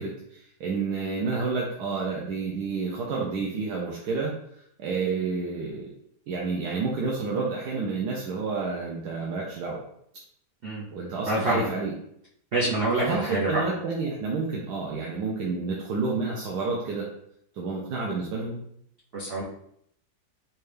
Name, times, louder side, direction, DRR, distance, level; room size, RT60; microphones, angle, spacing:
voice 1, 0.0-5.9 6.3-9.8 10.9-11.9 13.0-17.0 17.5-18.6, right 4 dB, 85° right, -3 dB, 1.2 m, -30 dB
voice 2, 11.3-11.7 12.5-13.6 19.1-19.4, right 2 dB, 50° right, -6 dB, 0.7 m, -26 dB
4.2 x 2.3 x 3.2 m, 0.71 s
omnidirectional pair, 1.7 m